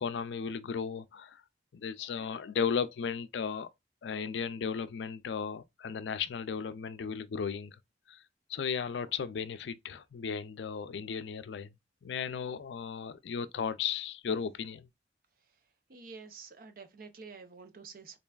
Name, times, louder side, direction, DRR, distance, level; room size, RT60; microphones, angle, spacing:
voice 1, 0.0-1.4 1.7-3.7 4.0-7.8 8.1-8.2 8.5-11.8 12.0-14.9, left 6 dB, 85° left, 0.4 m, -35 dB
voice 2, 15.9-18.2, right 4 dB, 55° right, 0.7 m, -48 dB
3.8 x 3.3 x 2.3 m
head